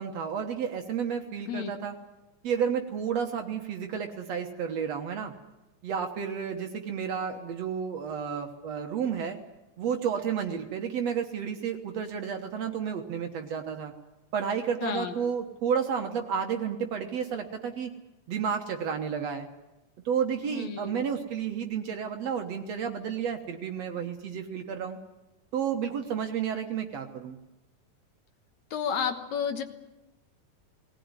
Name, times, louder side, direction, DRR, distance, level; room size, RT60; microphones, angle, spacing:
voice 1, 0.0-2.0 2.4-5.3 5.8-9.4 9.8-13.9 14.3-17.9 18.3-19.5 20.1-25.0 25.5-27.4, right 7 dB, 65° right, 5 dB, 2.3 m, -31 dB
voice 2, 14.8-15.1 20.5-21.1 28.7-29.6, left 7 dB, 70° left, 7 dB, 2.6 m, -31 dB
19.0 x 18.5 x 9.7 m, 1.0 s
omnidirectional pair, 3.4 m